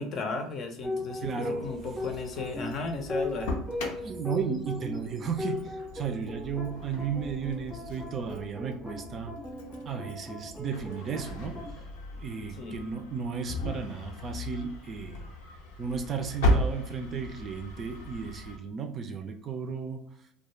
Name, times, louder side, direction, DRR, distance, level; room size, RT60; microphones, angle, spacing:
voice 1, 0.0-3.5 12.6-12.8, left 3 dB, 50° left, 5 dB, 0.6 m, -34 dB
sound 1, 0.8-11.7, left 2 dB, ahead, 0.6 m, -38 dB
voice 2, 1.2-1.7 4.0-9.3 9.8-11.7 12.1-15.3 15.8-20.1, right 6 dB, 40° right, 6 dB, 0.4 m, -34 dB
Engine starting, 1.6-18.6, equal, 85° left, 0.6 m, -36 dB
2.3 x 2.2 x 3.1 m, 0.69 s
supercardioid pair, 90°, 0 cm